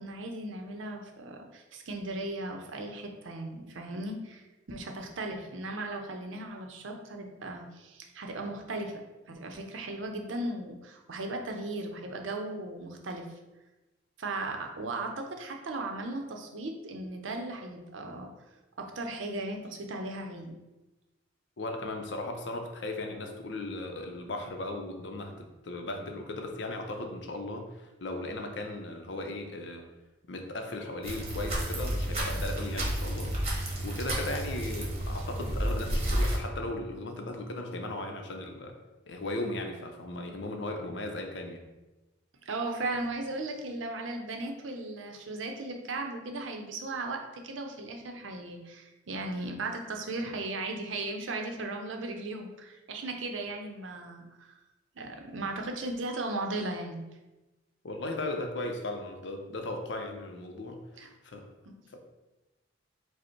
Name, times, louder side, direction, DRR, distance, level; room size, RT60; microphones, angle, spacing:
voice 1, 0.0-13.3 14.2-18.4 18.8-20.5 42.4-54.6 55.0-57.0 61.0-61.1 61.7-61.8, right 2 dB, 80° right, 3 dB, 0.6 m, -37 dB
voice 2, 21.6-29.9 30.3-38.7 39.1-41.6 57.8-61.5 61.9-62.0, left 2 dB, 65° left, 4 dB, 0.6 m, -37 dB
sound 1, 31.0-36.4, right 1 dB, 30° right, 1.0 m, -31 dB
5.0 x 2.1 x 4.4 m, 1.1 s
head